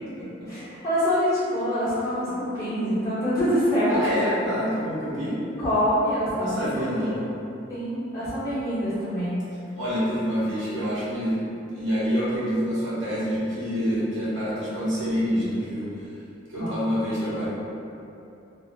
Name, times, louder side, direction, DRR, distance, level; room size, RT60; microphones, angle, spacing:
voice 1, 0.5-4.0 5.6-7.2 7.7-9.4 16.5-16.8, equal, 15° left, -14 dB, 0.9 m, -25 dB
voice 2, 3.9-5.4 6.3-7.2 9.8-15.8 16.5-17.5, equal, 75° right, -10 dB, 1.0 m, -27 dB
2.4 x 2.0 x 3.4 m, 2.8 s
head